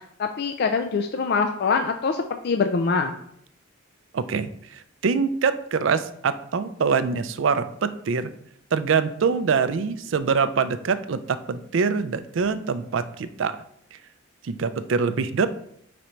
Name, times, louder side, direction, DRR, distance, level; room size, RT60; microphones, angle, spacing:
voice 1, 0.2-3.1, left 5 dB, 50° left, 6 dB, 0.4 m, -24 dB
voice 2, 4.1-8.3 8.7-13.6 14.4-15.5, right 5 dB, 65° right, 12 dB, 0.4 m, -24 dB
5.1 x 4.2 x 4.4 m, 0.69 s
head